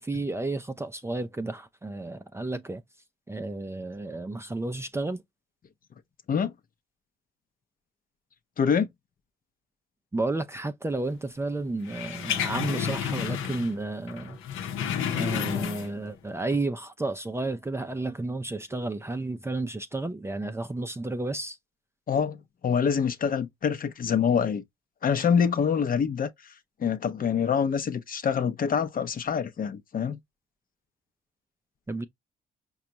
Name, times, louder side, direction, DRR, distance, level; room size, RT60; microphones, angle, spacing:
voice 1, 0.0-2.8 3.3-5.2 10.1-14.4 15.1-21.6 31.9-32.0, right 2 dB, 15° right, 0.4 m, -32 dB
voice 2, 8.6-8.9 22.1-22.4 22.6-24.6 25.0-26.3 26.8-30.2, left 7 dB, 45° left, 0.7 m, -25 dB
sound 1, 11.9-13.8 14.1-16.1 16.4-16.6, left 8 dB, 85° left, 0.8 m, -31 dB
5.0 x 2.3 x 2.8 m
cardioid pair, 90°, 20 cm